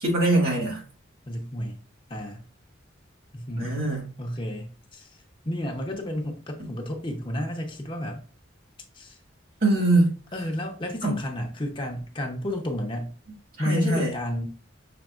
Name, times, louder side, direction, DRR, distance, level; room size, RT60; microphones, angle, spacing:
voice 1, 0.0-0.8 3.6-4.0 9.6-10.1 11.0-11.1 13.6-14.1, right 2 dB, 50° right, 1.7 m, -22 dB
voice 2, 1.3-1.8 2.1-2.4 3.3-3.8 4.2-8.2 8.9-9.2 10.3-13.1 13.6-14.5, left 1 dB, 25° left, 0.7 m, -32 dB
6.0 x 3.3 x 2.4 m
head